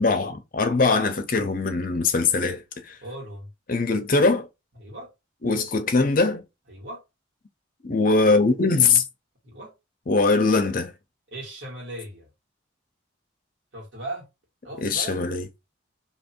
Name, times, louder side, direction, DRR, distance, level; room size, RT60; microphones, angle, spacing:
voice 1, 0.0-2.9 3.7-4.5 5.4-6.4 7.8-9.0 10.1-10.9 14.8-15.4, left 3 dB, 45° left, 0.6 m, -21 dB
voice 2, 3.0-3.5 4.8-5.1 6.7-7.0 9.4-9.7 11.3-12.3 13.7-14.3 14.6-15.2, right 1 dB, 65° right, 1.9 m, -37 dB
2.9 x 2.7 x 4.3 m
head